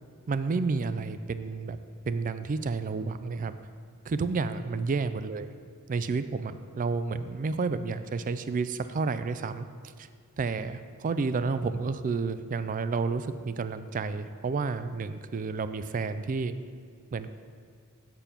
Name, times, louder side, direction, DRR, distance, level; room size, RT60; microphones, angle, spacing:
voice 1, 0.3-1.8 2.0-3.6 4.1-5.5 5.9-9.7 10.0-10.1 10.4-16.5 17.1-17.3, right 4 dB, 35° right, 12 dB, 0.3 m, -30 dB
6.9 x 6.9 x 5.8 m, 2.1 s
head